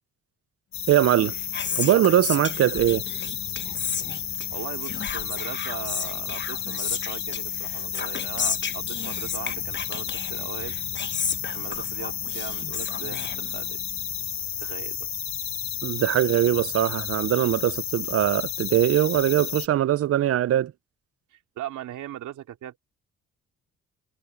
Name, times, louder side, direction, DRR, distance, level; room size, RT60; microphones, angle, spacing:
sound 1, 0.7-19.7, left 8 dB, 60° left, 3.6 m, -32 dB
voice 1, 0.9-1.3 1.8-3.0 15.8-20.7, right 12 dB, 50° right, 0.6 m, -21 dB
Whispering, 1.1-13.9, left 6 dB, 35° left, 1.2 m, -34 dB
voice 2, 4.5-10.8 11.5-13.8 14.6-15.1 21.3-22.8, right 12 dB, 80° right, 3.1 m, -39 dB
cardioid pair, 90°, 30 cm